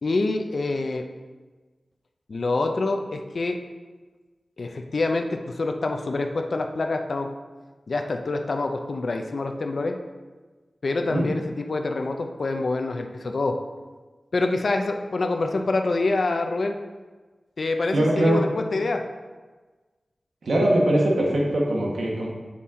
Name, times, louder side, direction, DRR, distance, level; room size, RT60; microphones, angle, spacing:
voice 1, 0.0-1.1 2.3-3.6 4.6-7.3 7.9-9.9 10.8-13.6 14.3-16.8 17.6-19.0, left 3 dB, 65° left, 4 dB, 0.5 m, -26 dB
voice 2, 17.9-18.4 20.4-22.3, right 1 dB, 90° right, -2 dB, 1.1 m, -21 dB
7.3 x 4.2 x 3.6 m, 1.3 s
wide cardioid pair, 105°, 0 cm